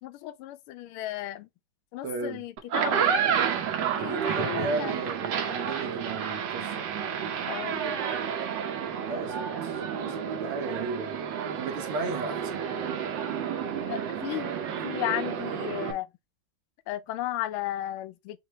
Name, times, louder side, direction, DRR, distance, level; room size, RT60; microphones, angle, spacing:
voice 1, 0.0-1.5 1.9-3.2 3.9-5.1 7.5-8.0 13.9-14.5 14.8-16.1 16.9-18.4, left 14 dB, 85° left, 1.5 m, -34 dB
voice 2, 2.0-2.4 3.8-6.9 9.0-11.2 11.6-12.6, right 3 dB, 80° right, 2.0 m, -35 dB
sound 1, 2.6-15.9, right 8 dB, 65° right, 1.5 m, -30 dB
6.0 x 2.7 x 3.0 m
omnidirectional pair, 2.3 m